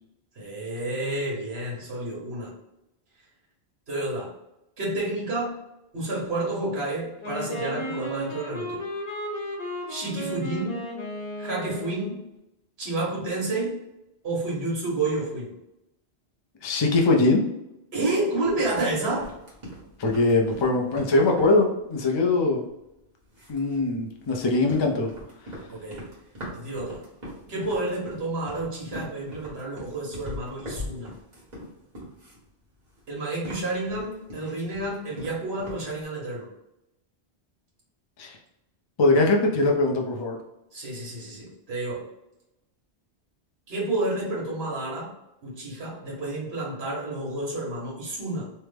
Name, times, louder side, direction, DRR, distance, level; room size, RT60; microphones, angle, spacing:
voice 1, 0.3-2.5 3.9-4.3 4.8-5.6 5.9-8.8 9.9-10.9 11.4-12.3 12.8-13.8 14.2-15.5 17.9-19.3 25.7-26.1 26.5-27.0 27.5-31.1 33.1-36.5 40.7-42.1 43.7-45.1 45.4-48.5, right 2 dB, 65° right, -4 dB, 1.4 m, -30 dB
Wind instrument woodwind instrument, 7.2-12.2, equal, 60° left, 1.1 m, -34 dB
voice 2, 16.6-17.4 20.0-22.6 23.5-25.1 38.2-38.4 39.0-40.4, left 2 dB, 45° left, 1 dB, 0.3 m, -22 dB
sound 1, 18.4-22.9 23.3-32.5 32.7-36.0, equal, 40° right, 1.3 m, -41 dB
3.3 x 2.1 x 3.3 m, 0.90 s
omnidirectional pair, 1.1 m